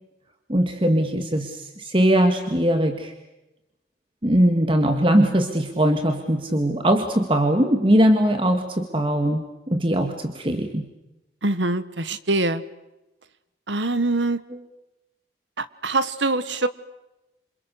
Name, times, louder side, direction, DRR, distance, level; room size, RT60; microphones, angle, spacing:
voice 1, 0.5-3.1 4.2-10.9, right 1 dB, 30° right, 5 dB, 1.8 m, -21 dB
voice 2, 11.4-12.6 13.7-14.4 15.6-16.7, right 2 dB, 80° right, 14 dB, 1.5 m, -24 dB
28.0 x 27.5 x 6.7 m, 0.97 s
head